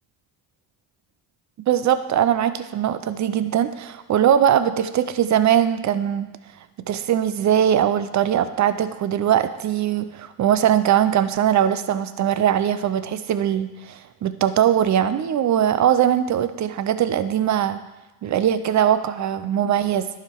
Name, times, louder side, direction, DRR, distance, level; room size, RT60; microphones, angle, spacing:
voice 1, 1.7-6.3 6.9-17.8 18.2-20.1, right 10 dB, 45° right, 12 dB, 0.7 m, -21 dB
11.0 x 5.0 x 4.6 m, 1.0 s
cardioid pair, 85°, 39 cm